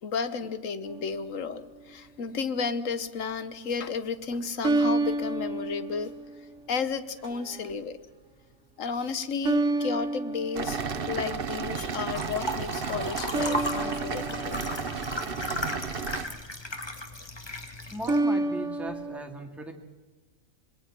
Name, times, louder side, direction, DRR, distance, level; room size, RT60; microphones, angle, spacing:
voice 1, 0.0-6.1 6.7-8.0 8.8-14.6, left 5 dB, 85° left, 13 dB, 1.5 m, -33 dB
sound 1, 0.8-1.7 4.6-6.7 7.2-7.7 9.4-11.4 13.3-15.8 18.0-19.2, right 2 dB, 70° right, 1.8 m, -30 dB
sound 2, 10.5-16.3, right 5 dB, 50° right, 1.1 m, -33 dB
sound 3, 12.1-18.2, left 1 dB, 20° left, 1.6 m, -36 dB
voice 2, 17.9-19.7, equal, ahead, 2 dB, 2.2 m, -38 dB
26.0 x 21.0 x 6.1 m, 1.2 s
omnidirectional pair, 1.3 m